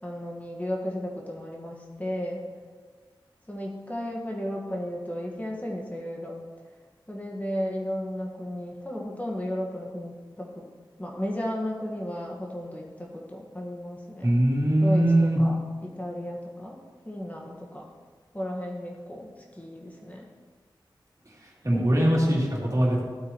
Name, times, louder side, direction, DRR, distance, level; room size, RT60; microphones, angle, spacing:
voice 1, 0.0-2.4 3.5-6.3 7.1-10.6 11.0-14.3 14.8-16.8 17.0-17.9 18.3-20.2, equal, 15° left, -2 dB, 1.6 m, -34 dB
voice 2, 14.2-15.4 21.6-23.0, right 1 dB, 40° right, -4 dB, 3.0 m, -21 dB
14.0 x 8.2 x 3.1 m, 1.5 s
cardioid pair, 45°, 9 cm